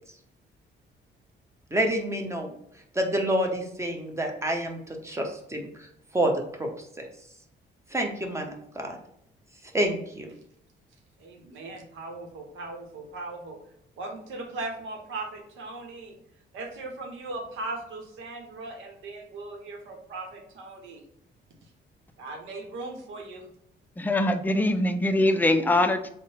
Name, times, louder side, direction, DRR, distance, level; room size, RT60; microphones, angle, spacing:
voice 1, 1.7-2.5 2.9-5.7 6.1-6.3 6.6-6.7 7.0-7.1 7.9-8.9 9.7-10.3, right 1 dB, 15° right, 2 dB, 0.8 m, -28 dB
voice 2, 11.2-13.6 14.0-16.2 16.5-21.0 22.2-23.5, right 2 dB, 80° right, 2 dB, 0.8 m, -38 dB
voice 3, 24.0-26.1, left 1 dB, 10° left, 8 dB, 0.3 m, -23 dB
3.7 x 2.1 x 4.1 m, 0.74 s
cardioid pair, 90°, 20 cm